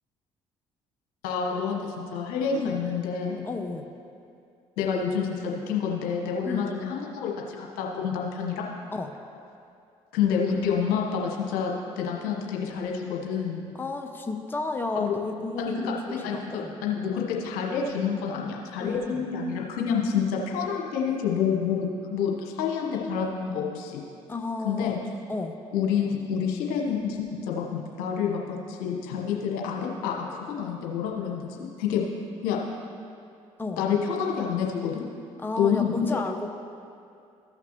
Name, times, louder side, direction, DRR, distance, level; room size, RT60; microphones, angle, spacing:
voice 1, 1.2-3.4 4.8-8.6 10.1-13.6 14.9-15.1 15.6-24.0 24.6-25.0 25.7-32.1 32.4-32.6 33.8-35.0 35.6-35.9, left 6 dB, 70° left, -1 dB, 1.2 m, -28 dB
voice 2, 3.4-3.9 6.4-6.6 8.9-9.1 13.7-16.7 18.8-19.2 24.3-25.0 25.3-25.5 33.6-33.8 35.4-36.5, left 3 dB, 15° left, 4 dB, 0.7 m, -32 dB
14.0 x 5.9 x 3.0 m, 2.5 s
hypercardioid pair, 50°, 16 cm